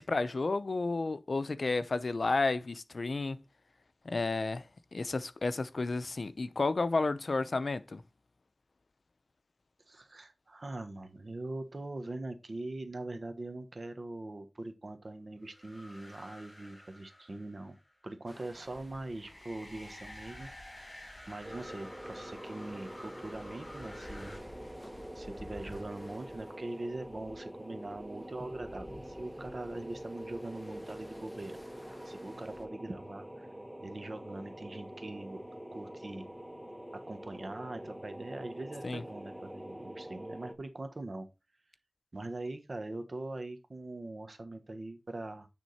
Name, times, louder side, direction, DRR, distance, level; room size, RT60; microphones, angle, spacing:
voice 1, 0.0-3.4 4.0-4.6 4.9-8.0 38.8-39.0, left 3 dB, 80° left, 0.6 m, -31 dB
voice 2, 9.9-17.8 18.0-20.5 21.3-24.4 25.1-31.6 32.0-33.5 33.8-35.4 35.7-36.3 37.1-41.3 42.1-45.5, right 2 dB, 65° right, 1.3 m, -42 dB
sound 1, 15.4-18.0 19.1-24.4, left 1 dB, 40° left, 4.3 m, -51 dB
sound 2, 18.3-32.7, left 1 dB, 15° left, 1.4 m, -54 dB
sound 3, 21.4-40.6, right 1 dB, 15° right, 1.2 m, -45 dB
9.5 x 3.7 x 4.2 m
wide cardioid pair, 50°, 0 cm